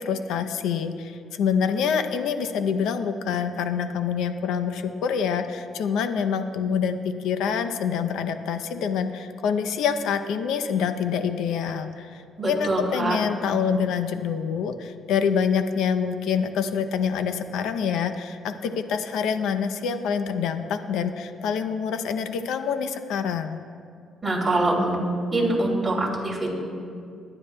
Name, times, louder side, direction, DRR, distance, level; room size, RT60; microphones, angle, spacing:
voice 1, 0.0-23.6, left 6 dB, 85° left, 8 dB, 0.6 m, -26 dB
voice 2, 12.4-13.2 24.2-25.0 25.3-26.5, right 2 dB, 15° right, -5 dB, 2.9 m, -24 dB
21.5 x 9.8 x 2.2 m, 2.3 s
cardioid pair, 90°, 0 cm